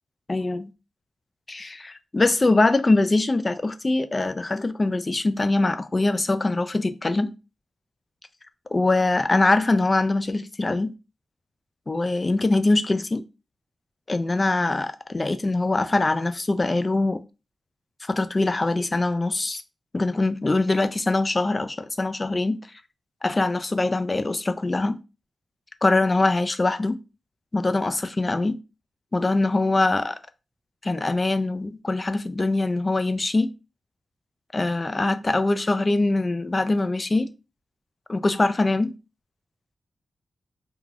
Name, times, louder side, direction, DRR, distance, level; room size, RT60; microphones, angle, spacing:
voice 1, 0.3-0.7 1.5-7.3 8.7-10.9 11.9-13.2 14.1-17.2 18.1-19.6 19.9-22.6 23.2-25.0 25.8-27.0 27.5-28.6 29.1-30.2 30.8-33.5 34.5-37.3 38.1-38.9, left 2 dB, 30° left, 0.3 m, -23 dB
3.2 x 2.2 x 2.5 m
wide cardioid pair, 90°, 0 cm